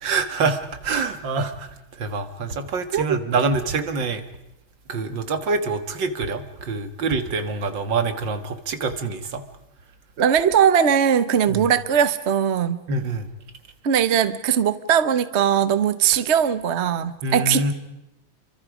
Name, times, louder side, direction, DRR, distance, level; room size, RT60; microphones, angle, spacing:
voice 1, 0.0-4.2 4.9-9.4 11.5-11.6 12.9-13.3 17.2-17.7, right 3 dB, 65° right, 9 dB, 2.3 m, -26 dB
voice 2, 10.2-12.8 13.8-17.7, right 8 dB, 45° right, 13 dB, 0.9 m, -20 dB
30.0 x 25.0 x 5.0 m, 0.87 s
omnidirectional pair, 2.2 m